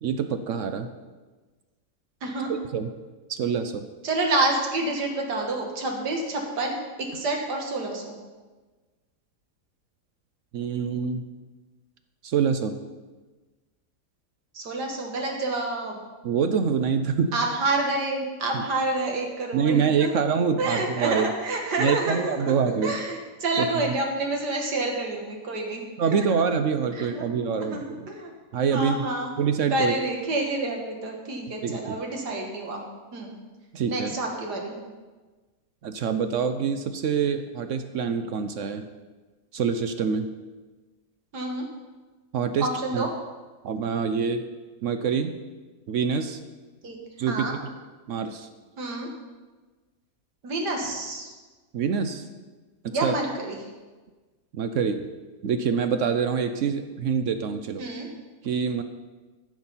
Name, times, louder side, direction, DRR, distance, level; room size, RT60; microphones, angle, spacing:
voice 1, 0.0-0.9 2.5-2.9 3.3-3.8 10.5-11.2 12.2-12.8 16.2-17.3 18.5-18.6 19.5-21.3 21.8-23.0 23.6-23.9 26.0-28.1 28.5-29.0 29.4-29.9 31.6-32.0 33.7-34.1 35.8-38.9 39.5-40.3 42.3-42.7 42.9-43.0 43.6-44.4 44.8-45.3 45.9-46.4 47.2-47.5 48.1-48.5 51.7-52.3 52.8-53.1 54.5-55.1 55.4-57.8 58.4-58.8, right 6 dB, 65° right, 8 dB, 0.8 m, -25 dB
voice 2, 2.2-2.6 4.0-6.8 7.1-8.2 14.5-16.0 17.3-20.2 20.6-22.5 22.8-25.8 26.1-26.5 27.0-27.3 27.6-28.3 28.7-29.3 29.7-32.9 33.1-33.4 33.9-34.8 41.3-41.7 42.6-43.1 46.8-47.0 47.3-47.5 48.8-49.1 50.4-51.3 52.9-53.6 57.8-58.1, right 2 dB, 90° right, 1 dB, 2.2 m, -28 dB
14.0 x 6.1 x 5.6 m, 1.3 s
omnidirectional pair, 1.7 m